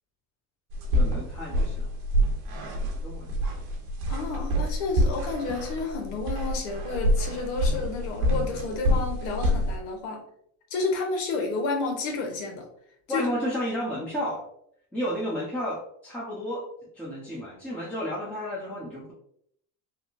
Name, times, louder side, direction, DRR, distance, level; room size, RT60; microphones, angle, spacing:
sound 1, 0.7-9.8, equal, 70° right, 1.0 m, -27 dB
voice 1, 0.9-1.9 2.7-3.3 13.1-14.5 14.9-19.1, equal, 5° left, -7 dB, 0.8 m, -32 dB
voice 2, 4.1-10.2 10.7-12.7 13.1-13.3, left 3 dB, 70° left, 2 dB, 1.1 m, -31 dB
3.6 x 2.2 x 2.6 m, 0.69 s
supercardioid pair, 80°, 49 cm